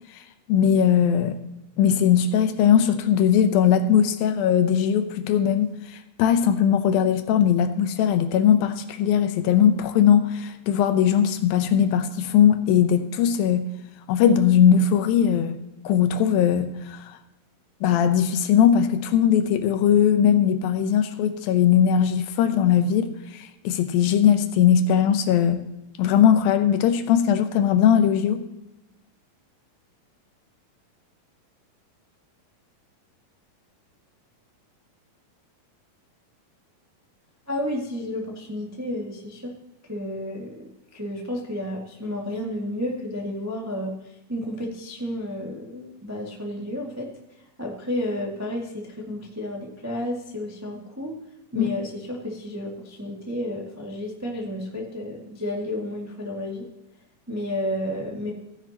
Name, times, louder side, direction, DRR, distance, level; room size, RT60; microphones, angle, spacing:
voice 1, 0.5-1.4 1.8-5.7 6.2-13.7 14.1-15.6 15.8-17.1 17.8-23.1 23.4-25.6 26.0-28.4 51.5-51.7, left 8 dB, 80° left, 2.6 m, -19 dB
voice 2, 37.5-39.5 39.9-40.6 40.9-43.9 44.3-47.1 47.6-51.2 51.5-56.7 57.3-58.3, left 1 dB, 20° right, 0.4 m, -31 dB
16.0 x 10.0 x 2.9 m
omnidirectional pair, 4.2 m